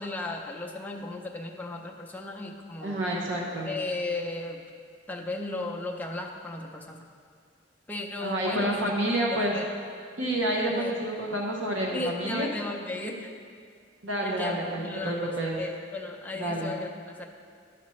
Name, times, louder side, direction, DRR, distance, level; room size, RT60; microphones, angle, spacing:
voice 1, 0.0-3.0 3.7-4.6 5.1-7.0 7.9-8.9 9.3-9.7 10.7-10.9 11.9-13.3 14.2-15.3 15.6-17.3, left 2 dB, 10° left, 0 dB, 0.5 m, -35 dB
voice 2, 2.8-3.7 8.2-9.5 10.2-12.5 14.0-15.6 16.4-16.7, right 1 dB, 70° right, -2 dB, 0.8 m, -29 dB
11.5 x 5.9 x 3.1 m, 2.2 s
head